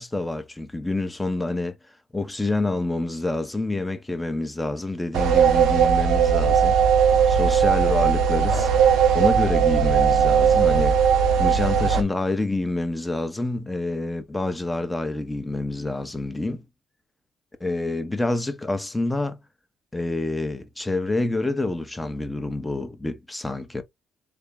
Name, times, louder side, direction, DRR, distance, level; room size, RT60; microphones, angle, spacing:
voice 1, 0.0-1.7 2.1-6.8 7.3-8.7 9.1-11.0 11.4-16.6 17.6-19.4 19.9-23.8, left 2 dB, 15° left, 0.8 m, -27 dB
sound 1, 5.1-12.0, right 7 dB, 75° right, 0.8 m, -18 dB
3.5 x 2.1 x 3.6 m
supercardioid pair, 60°, 0 cm